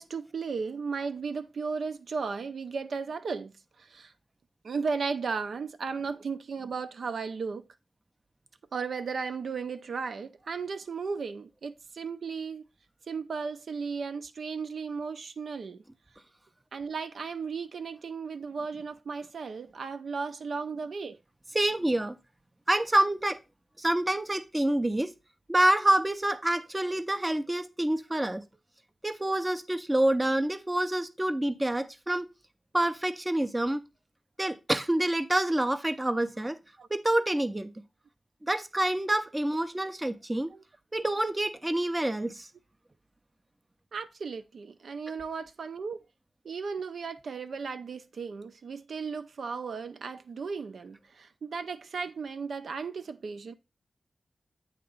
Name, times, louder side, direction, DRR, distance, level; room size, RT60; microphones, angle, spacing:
voice 1, 0.0-3.5 3.8-4.1 4.6-7.6 8.7-12.7 13.1-15.8 16.7-21.2 36.8-36.9 40.5-40.6 43.9-46.0 46.4-53.5, right 5 dB, 75° right, 0.5 m, -35 dB
voice 2, 21.5-22.2 22.7-23.4 23.8-25.1 25.5-28.4 29.0-32.3 32.7-33.8 34.4-36.6 36.9-37.7 38.4-40.5 40.9-42.5, right 1 dB, 15° right, 0.5 m, -27 dB
8.5 x 2.9 x 5.2 m
wide cardioid pair, 145°, 0 cm